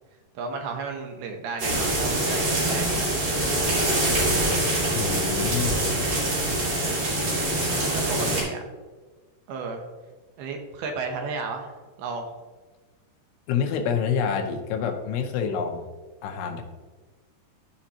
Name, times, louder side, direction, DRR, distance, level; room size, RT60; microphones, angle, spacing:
voice 1, 0.4-3.1 7.9-8.6 9.5-9.8 10.4-11.7 12.0-12.3, right 4 dB, 75° right, 3 dB, 2.6 m, -33 dB
sound 1, 1.6-8.4, right 1 dB, 50° right, 3.7 m, -24 dB
voice 2, 4.9-5.8 13.5-15.9 16.2-16.6, left 7 dB, 80° left, 3 dB, 2.8 m, -27 dB
13.0 x 5.1 x 2.8 m, 1.3 s
omnidirectional pair, 4.8 m